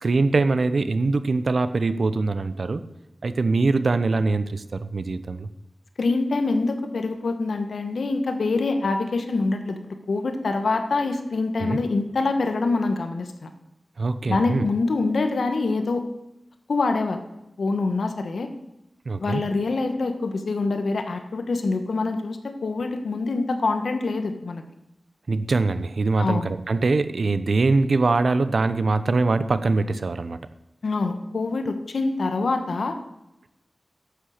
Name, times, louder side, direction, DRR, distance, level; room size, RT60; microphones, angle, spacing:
voice 1, 0.0-2.8 3.2-5.5 11.6-11.8 14.0-14.6 19.1-19.4 25.3-30.4, right 3 dB, 70° right, 12 dB, 0.8 m, -23 dB
voice 2, 6.0-9.8 10.1-13.5 14.3-16.0 16.7-17.2 17.6-18.5 19.2-24.6 26.2-26.5 30.8-33.0, left 3 dB, 90° left, 7 dB, 1.3 m, -25 dB
11.5 x 8.2 x 6.6 m, 0.90 s
wide cardioid pair, 65°, 0 cm